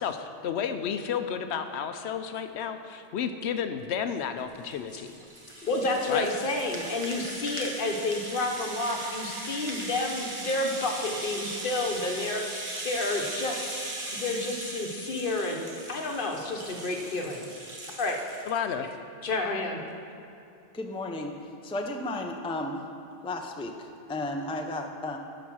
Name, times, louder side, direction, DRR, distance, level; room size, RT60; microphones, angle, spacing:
voice 1, 0.0-4.9 6.1-6.3 18.5-18.9, left 7 dB, 80° left, 8 dB, 0.9 m, -31 dB
Rattle (instrument), 4.4-18.6, right 1 dB, 30° right, 1.1 m, -38 dB
voice 2, 5.6-12.4 12.8-13.7 14.2-17.4 18.0-18.2 19.2-19.8, left 2 dB, 55° left, 2 dB, 1.1 m, -30 dB
voice 3, 20.7-21.3 21.6-22.9 23.2-25.2, left 2 dB, 5° left, 3 dB, 0.4 m, -33 dB
11.5 x 5.1 x 6.1 m, 2.7 s
omnidirectional pair, 1.1 m